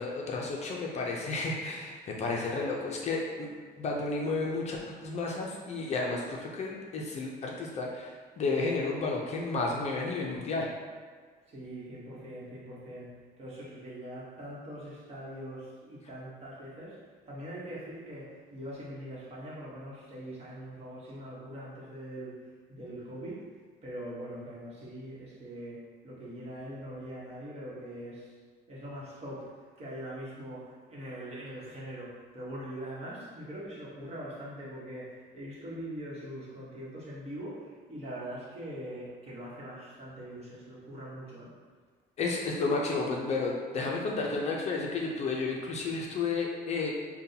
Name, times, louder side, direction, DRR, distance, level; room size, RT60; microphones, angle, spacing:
voice 1, 0.0-3.5 3.8-10.7 42.2-46.9, left 3 dB, 40° left, -1 dB, 0.5 m, -32 dB
voice 2, 11.5-17.0 17.3-23.5 23.8-28.4 28.7-41.5, right 1 dB, 35° right, -6 dB, 1.1 m, -42 dB
5.4 x 2.2 x 2.7 m, 1.5 s
cardioid pair, 145°, 17 cm